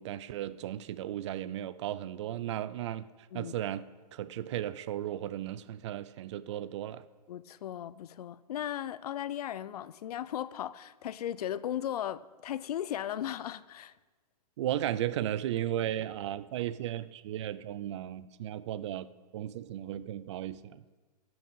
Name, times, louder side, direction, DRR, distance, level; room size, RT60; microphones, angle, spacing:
voice 1, 0.0-3.1 3.3-3.9 4.1-7.0 14.6-19.1 19.3-20.8, right 12 dB, 45° right, 0.4 m, -35 dB
voice 2, 7.3-13.9, left 11 dB, 65° left, 0.5 m, -36 dB
15.5 x 5.9 x 5.5 m
hypercardioid pair, 155°, 21 cm